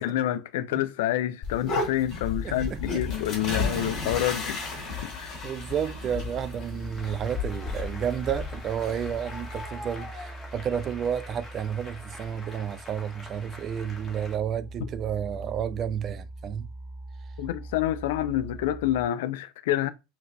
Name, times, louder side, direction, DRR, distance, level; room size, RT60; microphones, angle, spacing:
voice 1, 0.0-4.6 5.0-5.3 14.8-14.9 17.4-19.9, left 12 dB, 65° left, 0.4 m, -28 dB
sound 1, 1.4-9.7, left 4 dB, 40° left, 2.0 m, -33 dB
sound 2, 2.3-19.1, right 2 dB, ahead, 1.7 m, -43 dB
voice 2, 2.4-3.0 3.6-3.8 4.8-4.9 5.2-16.7, right 8 dB, 35° right, 0.3 m, -31 dB
Applause, 6.4-14.4, left 2 dB, 20° left, 1.5 m, -45 dB
5.5 x 2.7 x 2.2 m
figure-of-eight pair, 75°, 0 cm